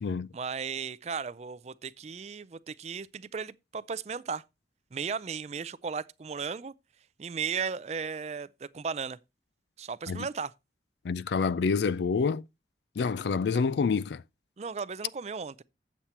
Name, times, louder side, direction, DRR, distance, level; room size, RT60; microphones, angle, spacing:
voice 1, 0.3-4.4 4.9-6.7 7.2-9.2 9.8-10.5 14.6-15.6, right 5 dB, 40° right, 0.4 m, -35 dB
voice 2, 11.0-12.4 13.0-14.2, left 5 dB, 75° left, 0.4 m, -27 dB
8.2 x 7.3 x 4.3 m
head